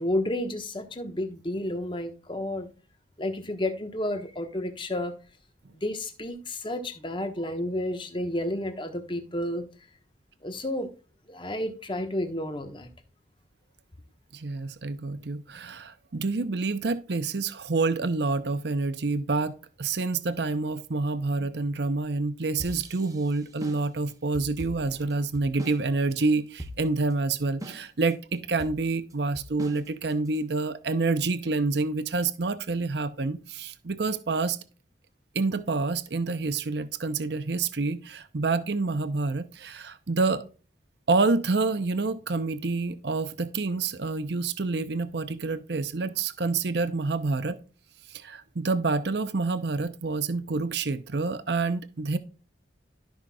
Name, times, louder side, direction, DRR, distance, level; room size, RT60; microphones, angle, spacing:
voice 1, 0.0-2.7 3.2-5.1 5.8-9.7 10.4-10.9 11.3-12.9, left 1 dB, 25° left, 1.2 m, -31 dB
voice 2, 14.3-34.6 35.3-40.4 41.1-47.6 48.1-52.2, right 3 dB, 60° right, 0.7 m, -28 dB
sound 1, 22.6-25.8 26.1-26.2 26.6-27.1 27.6-28.1 28.6-30.4, equal, 20° right, 1.0 m, -41 dB
13.0 x 5.7 x 2.3 m
head